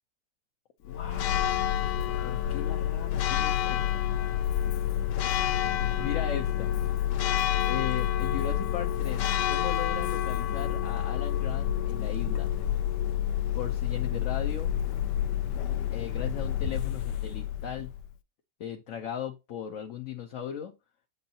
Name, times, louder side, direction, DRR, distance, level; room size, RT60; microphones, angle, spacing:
voice 1, 0.8-1.6 2.2-3.8 6.0-6.7 7.7-12.5 13.5-14.7 15.9-17.9 18.6-20.7, left 9 dB, 60° left, 0.9 m, -37 dB
Church bell, 0.9-18.1, left 11 dB, 80° left, 1.2 m, -28 dB
7.8 x 5.5 x 2.8 m
omnidirectional pair, 1.9 m